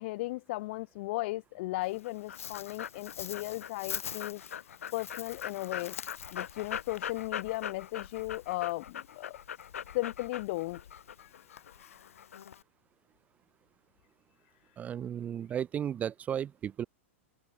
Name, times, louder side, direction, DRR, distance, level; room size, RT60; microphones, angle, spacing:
voice 1, 0.0-4.4 4.9-6.0 6.3-9.4 9.9-10.8 11.2-11.9, left 20 dB, 55° left, 1.0 m, -36 dB
Dog, 1.8-12.6, left 9 dB, 85° left, 1.8 m, -41 dB
voice 2, 14.8-16.8, right 9 dB, 20° right, 0.4 m, -34 dB
hypercardioid pair, 125°, 7 cm